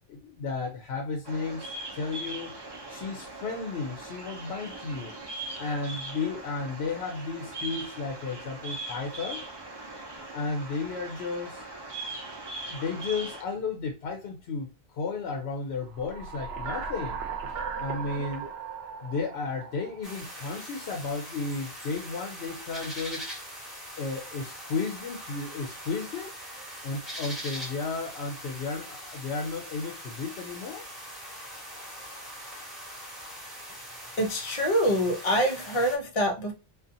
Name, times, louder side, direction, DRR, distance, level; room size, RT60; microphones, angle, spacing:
voice 1, 0.1-1.7 1.9-2.6 2.9-5.2 5.6-9.4 10.3-11.6 12.7-14.7 14.9-17.2 17.8-18.5 19.0-23.3 24.0-26.3 26.8-30.8, left 4 dB, 80° left, 2 dB, 0.8 m, -33 dB
Bird vocalization bird call bird song, 1.2-13.4, right 2 dB, 30° right, 0.5 m, -40 dB
sound 1, 15.9-20.5, right 6 dB, 75° right, 0.9 m, -37 dB
sound 2, 20.0-36.0, equal, ahead, 0.9 m, -42 dB
voice 2, 34.2-36.5, equal, 40° left, 3 dB, 0.6 m, -25 dB
2.5 x 2.4 x 2.6 m, 0.28 s
omnidirectional pair, 1.1 m